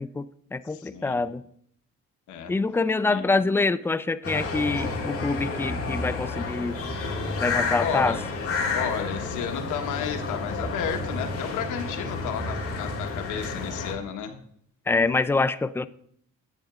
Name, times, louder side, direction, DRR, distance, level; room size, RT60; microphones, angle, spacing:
voice 1, 0.0-1.4 2.5-6.8 7.4-8.2 14.9-15.9, left 3 dB, 10° left, 14 dB, 0.3 m, -25 dB
voice 2, 0.7-1.2 2.3-2.5 3.1-3.3 7.7-8.2 8.7-14.3, left 7 dB, 90° left, 5 dB, 1.2 m, -32 dB
sound 1, 4.2-13.9, left 3 dB, 50° left, 2.0 m, -30 dB
10.5 x 9.2 x 2.4 m, 0.67 s
cardioid pair, 90°, 30 cm